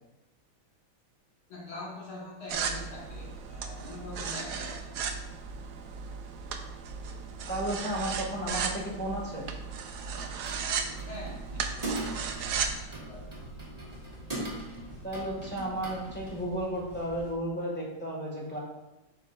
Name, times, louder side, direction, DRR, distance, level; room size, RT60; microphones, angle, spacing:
voice 1, 1.5-5.0 11.0-13.4, left 2 dB, 80° left, -5 dB, 2.7 m, -44 dB
sound 1, 2.5-12.8, right 6 dB, 70° right, 1.0 m, -35 dB
voice 2, 7.5-9.4 15.0-18.6, right 1 dB, 5° left, -4 dB, 1.7 m, -33 dB
sound 2, 10.1-16.4, right 2 dB, 20° right, 1.5 m, -41 dB
sound 3, 12.3-17.3, right 1 dB, 35° right, 2.6 m, -48 dB
8.5 x 6.3 x 2.5 m, 0.97 s
omnidirectional pair, 2.3 m